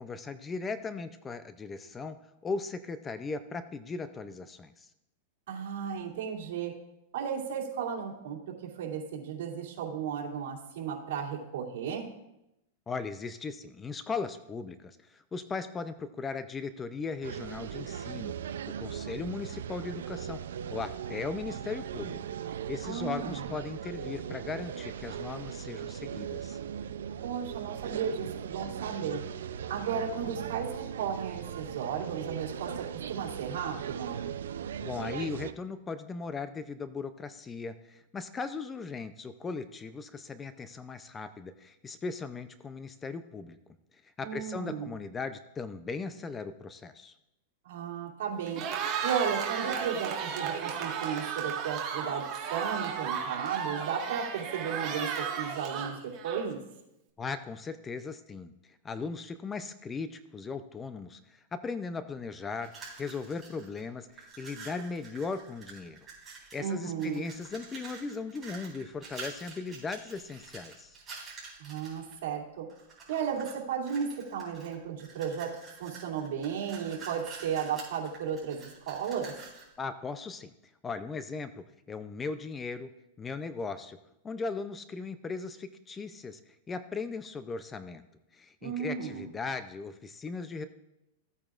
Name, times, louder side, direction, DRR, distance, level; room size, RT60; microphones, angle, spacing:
voice 1, 0.0-2.2 2.4-4.9 12.9-22.2 22.7-26.6 34.8-43.6 44.2-47.1 57.2-62.7 63.0-66.1 66.5-71.0 79.8-80.5 80.8-82.9 83.2-84.0 84.2-86.4 86.7-88.0 88.3-90.7, left 4 dB, 15° left, 11 dB, 0.4 m, -38 dB
voice 2, 5.5-6.7 7.1-12.1 22.8-23.5 27.2-29.2 29.7-34.3 44.2-44.9 47.6-48.6 49.0-52.2 52.5-56.6 66.6-67.3 71.6-72.7 73.1-75.5 75.8-79.3 88.6-89.3, right 7 dB, 70° right, -3 dB, 2.7 m, -34 dB
sound 1, 17.2-35.5, right 8 dB, 85° right, 0.5 m, -39 dB
Cheering, 48.4-56.7, right 7 dB, 35° right, 1.6 m, -34 dB
sound 2, 62.5-63.8 64.1-66.7 67.0-72.1 72.7-73.6 73.9-79.7, right 4 dB, 15° right, 4.0 m, -48 dB
14.5 x 8.8 x 2.5 m, 0.89 s
supercardioid pair, 140°, 0 cm